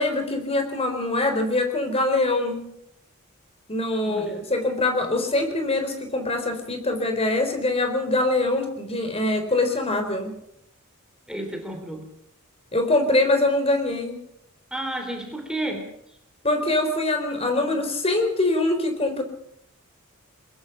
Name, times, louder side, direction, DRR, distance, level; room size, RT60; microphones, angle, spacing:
voice 1, 0.0-2.7 3.7-10.3 12.7-14.2 16.4-19.2, left 2 dB, 25° left, 6 dB, 4.0 m, -23 dB
voice 2, 4.1-4.4 11.3-12.1 14.7-15.8, right 1 dB, 5° right, 2 dB, 3.2 m, -31 dB
22.5 x 21.0 x 5.8 m, 0.76 s
head